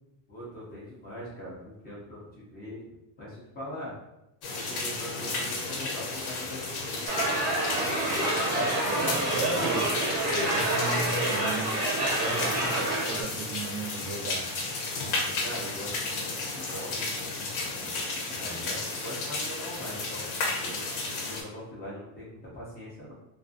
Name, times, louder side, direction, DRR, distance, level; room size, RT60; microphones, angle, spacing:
voice 1, 0.3-2.9 3.2-3.9 4.6-7.4 7.7-8.8 9.2-9.7 12.5-12.6 12.9-13.1 13.4-13.5 15.4-17.0 17.4-17.5 17.8-20.2 20.6-20.9 21.3-23.1, equal, 20° left, -7 dB, 0.3 m, -41 dB
sound 1, 4.4-21.4, left 3 dB, 80° left, 0.8 m, -33 dB
sound 2, 7.1-13.2, right 1 dB, 35° right, 0.5 m, -28 dB
voice 2, 8.9-9.9 10.3-11.8 12.2-14.5, right 3 dB, 85° right, 4 dB, 0.6 m, -35 dB
2.4 x 2.3 x 2.4 m, 0.91 s
cardioid pair, 180°, 49 cm